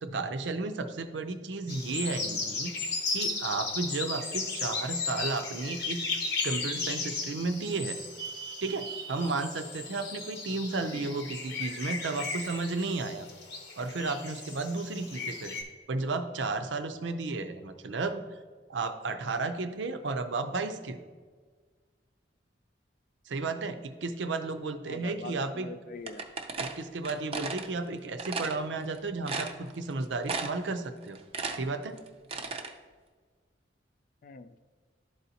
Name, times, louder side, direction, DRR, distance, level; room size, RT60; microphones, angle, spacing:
voice 1, 0.0-2.7 3.1-6.0 6.4-13.3 13.8-15.6 15.9-18.2 18.7-21.0 23.3-25.7 26.6-31.2 31.5-32.0, right 3 dB, 85° right, 8 dB, 0.5 m, -33 dB
sound 1, 1.7-15.6, left 4 dB, 65° left, 0.9 m, -36 dB
voice 2, 24.9-26.2 34.2-34.6, left 4 dB, 50° left, 12 dB, 0.4 m, -44 dB
sound 2, 26.1-27.7 28.2-28.6 28.9-29.0 29.3-29.9 30.3-30.7 31.0-32.7, right 4 dB, 35° right, 0.5 m, -35 dB
11.5 x 4.0 x 2.8 m, 1.5 s
head